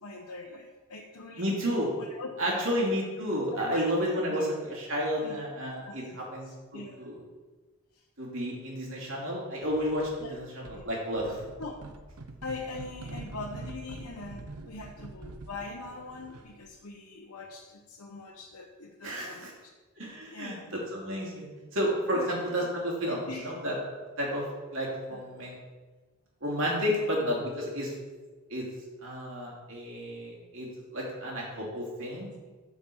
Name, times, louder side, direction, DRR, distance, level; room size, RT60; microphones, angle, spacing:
voice 1, 0.0-1.5 2.0-2.9 3.5-4.5 5.2-5.4 5.8-6.2 6.4-7.1 7.9-8.0 10.2-10.3 10.7-10.8 11.6-11.8 12.4-19.5 20.3-20.7 22.1-22.7 23.3-23.5 25.1-25.2 26.8-27.1, left 3 dB, 80° left, -1 dB, 1.0 m, -42 dB
voice 2, 1.4-1.9 2.4-7.2 8.2-11.4 19.0-19.5 20.0-24.5 24.7-25.6 26.4-27.9 28.5-28.7 29.0-32.5, equal, 60° right, -3 dB, 2.9 m, -32 dB
sound 1, 9.6-10.3 10.6-16.7, right 2 dB, 90° right, 0.9 m, -45 dB
9.8 x 5.3 x 7.0 m, 1.3 s
head